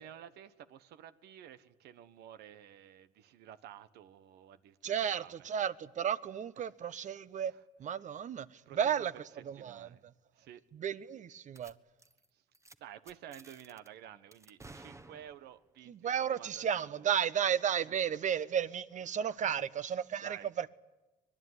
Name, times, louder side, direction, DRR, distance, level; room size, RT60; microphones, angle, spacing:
voice 1, 0.0-5.5 6.6-7.2 7.5-7.6 8.6-10.0 10.3-10.6 12.3-12.4 12.8-17.2 17.8-17.9 18.3-18.4 19.1-20.5, right 10 dB, 80° right, 1.4 m, -53 dB
voice 2, 4.8-7.5 7.8-9.1 9.4-9.9 10.7-11.7 15.9-20.7, right 8 dB, 50° right, 1.1 m, -33 dB
sound 1, 11.5-11.7 12.0-12.2 12.5-12.7 13.1-13.9 14.3-15.6, right 2 dB, 15° right, 1.3 m, -54 dB
24.5 x 20.5 x 9.8 m
cardioid pair, 100°, 16 cm